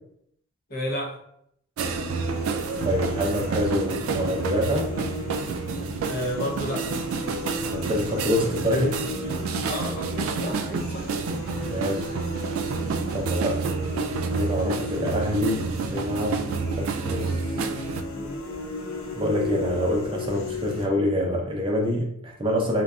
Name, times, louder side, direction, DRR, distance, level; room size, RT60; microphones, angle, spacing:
voice 1, 0.7-1.2 6.0-6.9 9.6-11.2 14.6-14.9, equal, 45° left, -1 dB, 0.8 m, -32 dB
sound 1, 1.8-20.8, left 2 dB, 75° left, 0.5 m, -35 dB
sound 2, 1.8-18.0, right 5 dB, 85° right, 0.3 m, -29 dB
voice 2, 2.8-4.9 7.7-9.0 11.6-12.1 13.1-13.7 14.3-16.4 16.8-17.3 19.2-22.8, equal, 25° right, 0 dB, 0.5 m, -26 dB
3.8 x 2.2 x 2.3 m, 0.71 s
head